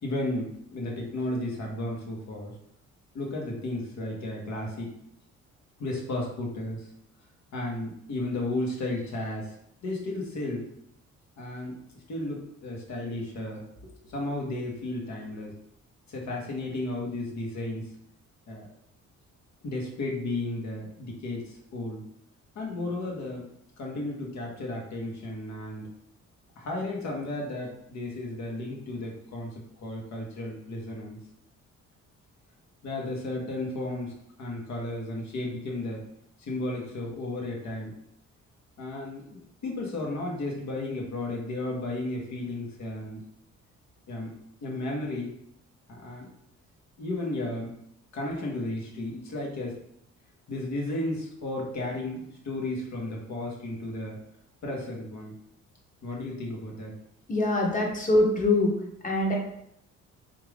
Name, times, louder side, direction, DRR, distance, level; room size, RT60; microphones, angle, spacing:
voice 1, 0.0-2.5 3.1-4.9 5.8-6.9 7.5-9.6 9.8-10.7 11.4-11.8 12.1-15.5 16.1-17.9 18.5-18.7 19.6-22.0 22.5-23.5 23.8-25.9 26.6-31.2 32.8-34.1 34.4-36.0 36.4-38.0 38.8-43.2 44.1-44.3 44.6-45.3 45.9-46.3 47.0-47.7 48.1-49.7 50.5-54.2 54.6-55.3 56.0-56.9, left 2 dB, 65° left, -1 dB, 1.3 m, -33 dB
voice 2, 57.3-58.7 59.0-59.3, left 2 dB, 25° left, -1 dB, 1.1 m, -23 dB
3.6 x 2.9 x 3.3 m, 0.73 s
cardioid pair, 90°, 30 cm